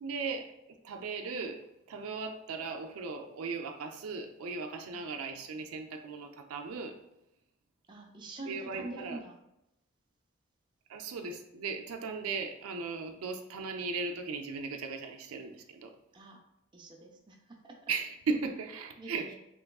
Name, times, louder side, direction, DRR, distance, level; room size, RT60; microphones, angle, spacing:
voice 1, 0.0-6.9 8.5-9.2 10.9-15.9 17.9-19.3, right 4 dB, 85° right, 4 dB, 0.4 m, -37 dB
voice 2, 4.8-5.2 7.9-9.4 16.1-16.4 16.7-17.7 19.0-19.4, right 2 dB, 20° right, 1 dB, 0.5 m, -45 dB
3.5 x 3.0 x 2.3 m, 0.85 s
head